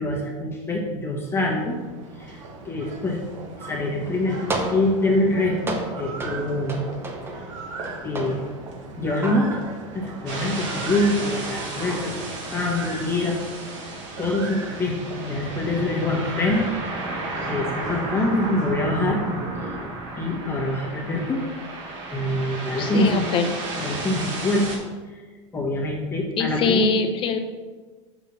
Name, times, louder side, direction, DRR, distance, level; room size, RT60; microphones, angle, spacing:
voice 1, 0.0-1.8 2.2-2.4 2.6-3.2 3.6-6.8 8.0-8.4 9.0-9.6 9.9-12.1 12.5-13.4 14.2-17.1 17.4-19.2 20.2-21.4 22.1-23.3 23.8-24.7 25.5-26.8, left 1 dB, 15° left, -2 dB, 1.4 m, -25 dB
sound 1, 1.1-19.5, right 3 dB, 85° right, 1.2 m, -39 dB
sound 2, 4.1-10.1 10.5-12.8 16.0-23.2, right 2 dB, 15° right, 0.7 m, -35 dB
sound 3, 10.3-24.8, right 2 dB, 60° right, 1.9 m, -34 dB
voice 2, 22.8-23.5 26.4-27.4, left 5 dB, 35° left, 7 dB, 0.7 m, -22 dB
6.0 x 3.6 x 5.6 m, 1.4 s
supercardioid pair, 125°, 16 cm